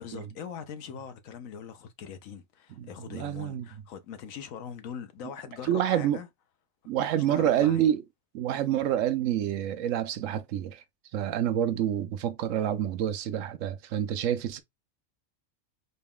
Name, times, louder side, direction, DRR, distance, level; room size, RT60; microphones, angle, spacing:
voice 1, 0.0-6.3 7.1-7.9, left 7 dB, 80° left, 1.2 m, -42 dB
voice 2, 2.8-3.7 5.7-6.2 6.9-8.0 8.3-10.8 11.1-14.6, right 10 dB, 75° right, 1.0 m, -27 dB
4.0 x 2.3 x 3.5 m
omnidirectional pair, 1.4 m